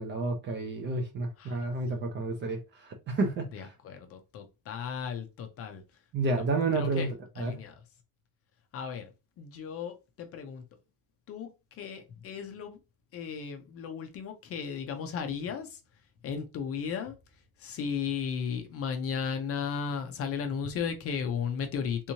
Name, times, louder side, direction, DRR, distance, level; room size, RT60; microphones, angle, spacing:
voice 1, 0.0-3.7 6.1-7.1 7.4-7.5, right 3 dB, 30° right, 0.3 m, -30 dB
voice 2, 3.5-5.8 6.3-6.4 6.7-7.8 8.7-9.1 9.4-10.6 11.3-11.5 11.8-12.8 13.1-15.8 16.2-17.2 17.6-22.1, left 6 dB, 35° left, 0.5 m, -35 dB
3.5 x 2.9 x 2.7 m
cardioid pair, 170°, 44 cm